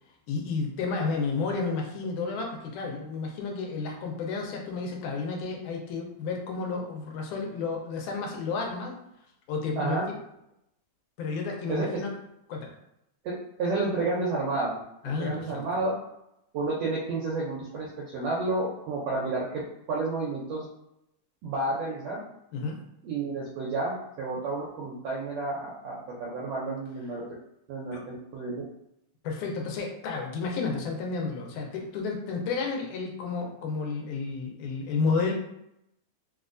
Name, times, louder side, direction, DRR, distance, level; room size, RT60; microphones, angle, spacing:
voice 1, 0.3-9.0 9.5-10.2 11.2-12.1 12.5-12.7 15.0-15.6 22.5-22.8 27.9-28.0 29.2-35.3, left 4 dB, 80° left, 1 dB, 2.1 m, -31 dB
voice 2, 13.2-15.9 16.5-19.5 19.9-20.6 21.4-22.2 23.0-27.2 27.7-28.6, right 3 dB, 80° right, -5 dB, 1.4 m, -31 dB
4.8 x 2.2 x 2.5 m, 0.82 s
omnidirectional pair, 3.5 m